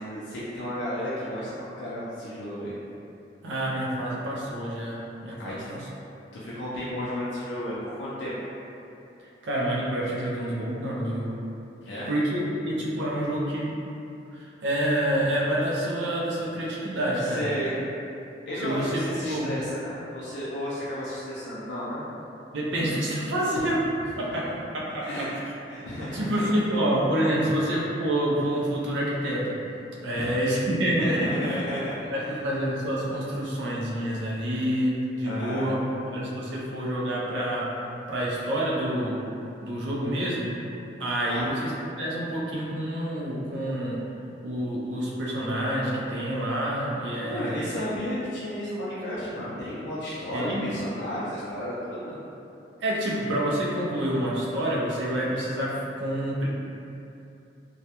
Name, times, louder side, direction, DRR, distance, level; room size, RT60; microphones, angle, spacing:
voice 1, 0.0-2.7 5.4-5.8 6.3-8.3 11.8-12.1 17.2-17.7 18.5-22.0 23.5-23.7 24.3-24.4 25.0-25.3 25.7-26.8 27.4-27.5 30.1-30.3 31.1-31.9 35.2-35.7 41.2-41.4 47.2-52.2, equal, 75° left, -9 dB, 0.4 m, -33 dB
voice 2, 3.4-5.9 9.2-11.3 12.1-13.7 14.3-17.5 18.6-19.5 22.5-23.8 24.2-25.4 26.1-29.5 30.0-35.9 36.1-37.7 38.1-39.2 39.6-40.5 41.0-41.7 42.0-44.0 44.4-47.7 50.3-50.6 52.8-56.5, right 1 dB, 85° right, -5 dB, 0.5 m, -28 dB
2.3 x 2.1 x 2.8 m, 2.7 s
head